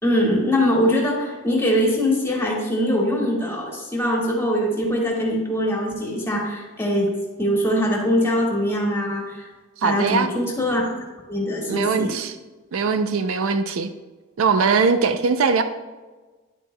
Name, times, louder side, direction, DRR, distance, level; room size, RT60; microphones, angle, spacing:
voice 1, 0.0-7.1 7.4-9.5 9.8-10.9 11.3-12.1, equal, 10° left, -2 dB, 1.8 m, -22 dB
voice 2, 9.8-10.3 11.7-12.4 12.7-13.9 14.4-15.6, right 5 dB, 70° right, 9 dB, 0.5 m, -21 dB
10.0 x 7.9 x 2.2 m, 1.3 s
head